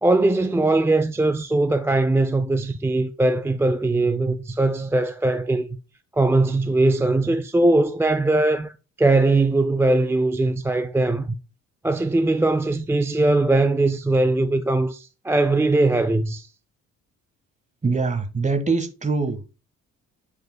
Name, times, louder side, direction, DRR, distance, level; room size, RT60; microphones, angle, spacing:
voice 1, 0.0-5.7 6.1-11.3 11.8-16.5, right 2 dB, 10° right, 0.3 m, -20 dB
voice 2, 17.8-19.5, right 4 dB, 25° right, 1.4 m, -23 dB
9.3 x 5.0 x 2.2 m
cardioid pair, 90°, 30 cm